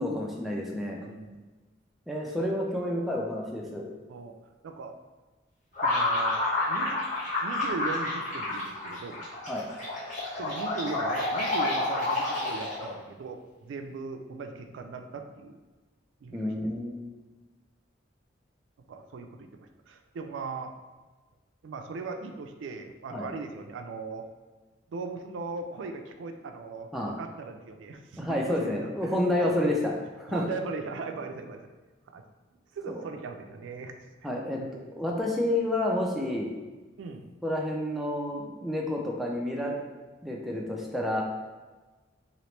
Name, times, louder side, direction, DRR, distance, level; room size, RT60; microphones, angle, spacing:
voice 1, 0.0-1.0 2.1-3.8 9.5-9.6 16.3-17.0 23.1-23.3 26.9-27.1 28.2-29.8 30.2-30.4 34.2-34.6 35.0-36.5 37.4-39.8 40.2-41.2, left 1 dB, ahead, -2 dB, 0.4 m, -29 dB
voice 2, 1.0-1.4 4.1-4.4 4.6-4.9 5.8-6.4 6.7-7.0 7.4-9.3 10.4-15.6 16.2-16.5 18.9-19.6 19.9-20.7 21.6-24.3 24.9-29.7 30.3-31.6 32.1-32.2 32.7-34.0 34.2-34.3 34.6-34.9 37.0-37.3, right 4 dB, 80° right, 5 dB, 0.3 m, -39 dB
sound 1, 5.7-13.0, left 2 dB, 40° left, 1.4 m, -29 dB
3.0 x 2.9 x 3.1 m, 1.3 s
head